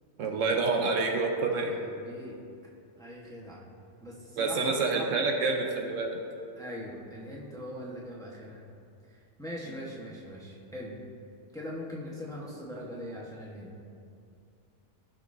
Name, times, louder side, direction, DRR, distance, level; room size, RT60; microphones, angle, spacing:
voice 1, 0.2-1.7 4.4-6.2, right 3 dB, 85° right, 2 dB, 1.2 m, -27 dB
voice 2, 1.4-2.4 3.0-3.6 4.0-5.1 6.6-8.6 9.1-11.0 11.5-13.7, equal, 5° left, -5 dB, 1.1 m, -41 dB
14.5 x 5.8 x 2.6 m, 2.5 s
omnidirectional pair, 1.3 m